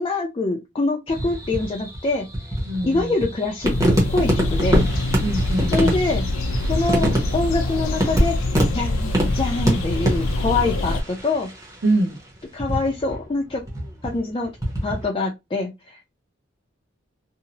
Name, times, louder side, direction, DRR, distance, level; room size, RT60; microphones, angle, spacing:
voice 1, 0.0-2.3 2.8-4.8 5.7-6.3 6.7-8.4 8.7-11.5 12.5-13.6 14.0-14.5 14.8-16.0, left 3 dB, 25° left, 0.4 m, -24 dB
sound 1, 1.1-11.9 12.6-13.2 13.5-15.0, equal, 15° right, 0.8 m, -25 dB
voice 2, 2.7-3.1 5.2-6.0 11.8-12.2, right 2 dB, 65° right, 0.7 m, -23 dB
sound 2, 3.6-11.0, left 2 dB, 90° left, 0.5 m, -25 dB
2.7 x 2.0 x 2.8 m
head